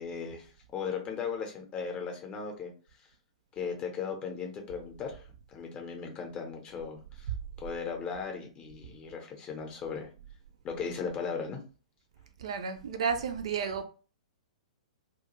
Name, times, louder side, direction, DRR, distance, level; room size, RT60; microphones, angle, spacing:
voice 1, 0.0-2.7 3.6-7.3 7.6-10.1 10.6-11.6, left 6 dB, 25° left, 0.7 m, -37 dB
voice 2, 12.4-13.9, right 6 dB, 55° right, 0.4 m, -32 dB
2.3 x 2.2 x 2.9 m
figure-of-eight pair, 110°, 4 cm